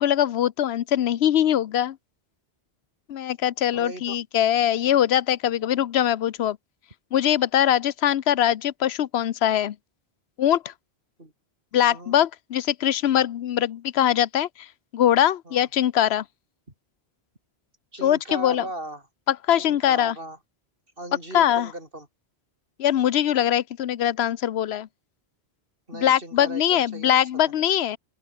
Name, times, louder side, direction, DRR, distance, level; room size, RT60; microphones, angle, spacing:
voice 1, 0.0-2.0 3.1-6.6 7.1-9.8 10.4-10.7 11.7-14.7 14.9-16.2 18.0-18.7 19.3-20.2 21.3-21.7 22.8-24.9 25.9-28.0, left 11 dB, 85° left, 0.9 m, -22 dB
voice 2, 3.7-4.2 11.2-11.3 11.9-12.1 15.5-15.7 17.9-19.0 19.5-20.4 21.0-22.1 25.9-27.5, right 1 dB, 60° right, 6.5 m, -37 dB
open air
omnidirectional pair, 1.1 m